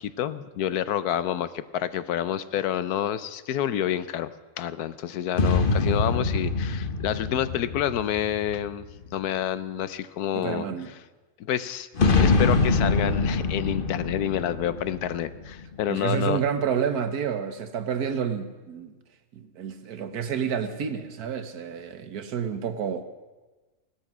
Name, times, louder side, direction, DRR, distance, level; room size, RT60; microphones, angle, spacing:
voice 1, 0.0-4.3 4.6-8.9 9.1-10.7 11.4-11.9 12.2-16.4, left 10 dB, 85° left, 14 dB, 1.2 m, -28 dB
sound 1, 5.3-9.0 12.0-15.7, left 3 dB, 40° left, 1.1 m, -24 dB
voice 2, 10.3-10.9 15.9-18.9 19.3-23.0, right 7 dB, 90° right, 10 dB, 1.6 m, -29 dB
17.0 x 13.0 x 6.1 m, 1.2 s
omnidirectional pair, 1.6 m